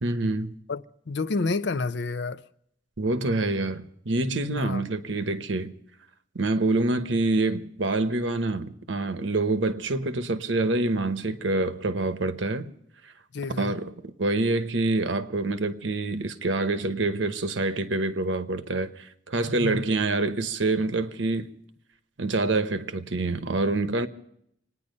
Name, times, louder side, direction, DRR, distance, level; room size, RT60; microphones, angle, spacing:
voice 1, 0.0-0.5 3.0-5.7 6.3-12.7 13.6-13.9 14.2-21.5 22.2-24.1, right 2 dB, 70° right, 1.0 m, -26 dB
voice 2, 0.7-2.4 4.5-4.8 13.3-13.7 19.5-19.8, left 3 dB, 60° left, 0.5 m, -29 dB
26.5 x 9.9 x 5.3 m
head